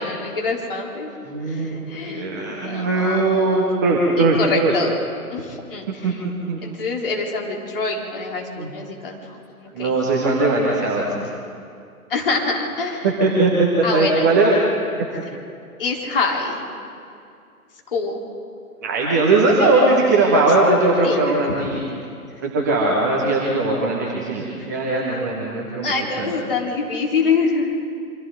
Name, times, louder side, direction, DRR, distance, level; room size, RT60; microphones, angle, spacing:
voice 1, 0.0-1.1 1.5-3.6 4.2-4.9 5.3-6.1 6.6-9.2 9.6-9.9 12.1-13.1 13.8-14.3 15.8-16.6 17.9-18.2 21.0-21.2 24.7-24.8 25.8-27.7, left 4 dB, 35° left, -1 dB, 4.1 m, -25 dB
voice 2, 1.3-4.7 6.0-6.1 6.5-6.6 8.5-8.7 9.7-11.3 13.0-14.6 14.9-15.0 18.8-21.8 22.4-25.9 26.2-26.3, right 2 dB, 10° right, -3 dB, 1.1 m, -19 dB
28.0 x 25.0 x 3.9 m, 2.4 s
figure-of-eight pair, 150°, 45 cm